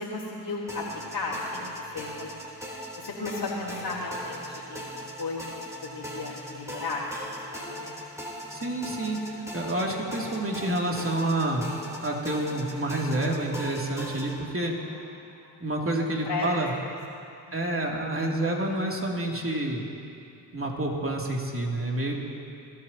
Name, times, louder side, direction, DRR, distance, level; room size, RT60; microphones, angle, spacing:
voice 1, 0.0-2.3 3.0-5.5 5.8-8.0 14.8-14.9 15.3-15.6 16.3-16.5 17.4-17.5, left 3 dB, 50° left, -9 dB, 3.6 m, -35 dB
sound 1, 0.7-14.4, equal, 5° right, 3.8 m, -40 dB
voice 2, 8.5-11.7 12.0-14.7 15.6-16.7 17.5-19.8 20.5-22.1, right 1 dB, 25° right, -1 dB, 3.1 m, -28 dB
23.0 x 13.5 x 3.0 m, 2.6 s
hypercardioid pair, 40°, 49 cm